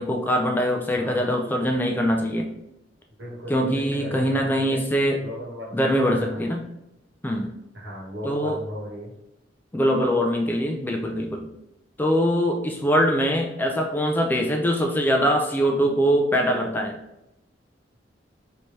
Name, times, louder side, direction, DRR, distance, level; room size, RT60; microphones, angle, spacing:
voice 1, 0.0-2.5 3.5-5.2 5.7-6.7 7.2-7.5 8.2-8.6 9.7-11.5 12.0-17.0, equal, 10° left, 1 dB, 0.3 m, -23 dB
voice 2, 0.9-1.5 3.2-4.8 5.2-6.4 7.7-9.1, equal, 70° right, -3 dB, 1.1 m, -37 dB
3.2 x 2.7 x 3.3 m, 0.86 s
head